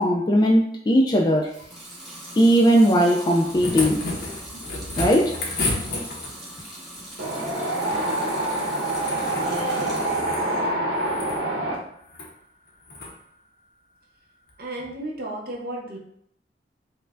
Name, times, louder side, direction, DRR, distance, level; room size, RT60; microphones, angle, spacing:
voice 1, 0.0-1.5 2.4-4.0 5.0-5.3, equal, 25° left, 0 dB, 0.3 m, -18 dB
Water tap faucet / Sink (filling or washing) / Liquid, 1.4-10.3 10.7-11.5, right 1 dB, ahead, 1.0 m, -41 dB
sound 1, 3.2-6.5 8.5-9.5 9.8-10.5 11.0-11.4 12.1-12.3 12.9-13.1 14.5-14.6, left 2 dB, 60° left, 0.8 m, -31 dB
Wind, 7.2-11.8, right 1 dB, 80° right, 1.1 m, -26 dB
voice 2, 9.3-10.6 14.6-16.0, right 1 dB, 60° right, -1 dB, 0.8 m, -35 dB
5.2 x 2.2 x 2.5 m, 0.69 s
head